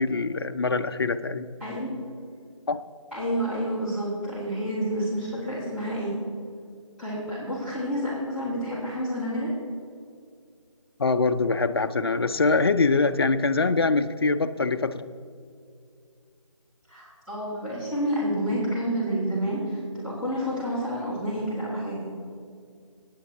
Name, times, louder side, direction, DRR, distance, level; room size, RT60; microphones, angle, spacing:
voice 1, 0.0-1.5 2.7-2.8 11.0-15.1, left 3 dB, 50° left, 10 dB, 0.6 m, -24 dB
voice 2, 1.6-2.0 3.1-6.2 7.0-9.5 16.9-22.1, equal, 5° right, -13 dB, 2.7 m, -29 dB
24.5 x 9.4 x 3.0 m, 2.3 s
figure-of-eight pair, 160°, 17 cm